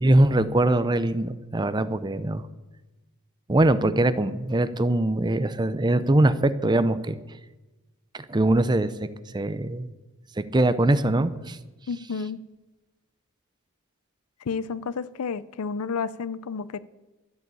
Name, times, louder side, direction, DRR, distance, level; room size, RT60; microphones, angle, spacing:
voice 1, 0.0-2.4 3.5-7.2 8.1-9.1 9.3-9.9 10.4-11.6, right 1 dB, 20° right, 0.6 m, -22 dB
voice 2, 11.9-12.4 14.4-16.8, left 5 dB, 85° left, 0.5 m, -31 dB
13.0 x 8.2 x 8.3 m
head